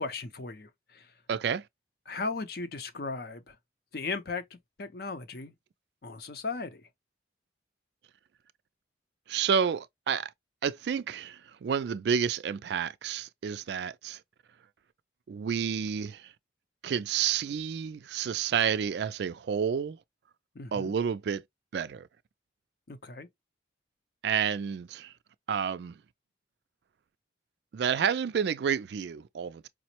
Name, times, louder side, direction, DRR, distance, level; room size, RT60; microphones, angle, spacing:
voice 1, 0.0-1.1 2.1-3.6 3.9-5.5 6.0-6.9 20.5-20.9 22.9-23.3, left 3 dB, 55° left, 0.6 m, -37 dB
voice 2, 1.3-1.6 9.3-10.3 10.6-14.2 15.3-16.3 16.8-20.0 20.7-21.4 21.7-22.1 24.2-25.1 25.5-26.0 27.7-29.7, right 7 dB, 60° right, 0.3 m, -30 dB
5.0 x 2.0 x 2.8 m
head